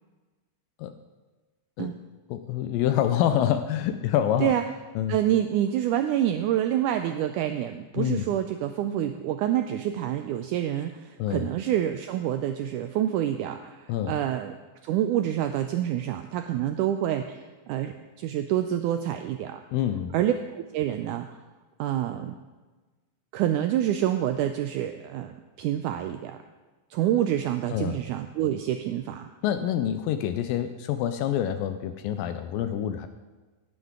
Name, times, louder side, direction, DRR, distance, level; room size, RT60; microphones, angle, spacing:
voice 1, 2.3-4.5 5.0-5.2 8.0-8.3 11.2-11.5 13.9-14.2 19.7-20.1 27.7-28.0 29.4-33.1, left 10 dB, 80° left, 9 dB, 2.3 m, -26 dB
voice 2, 5.1-14.5 14.8-19.6 20.1-21.4 21.8-22.4 23.3-26.4 26.9-29.3, right 11 dB, 85° right, 7 dB, 1.8 m, -27 dB
17.0 x 9.5 x 3.7 m, 1.3 s
omnidirectional pair, 4.1 m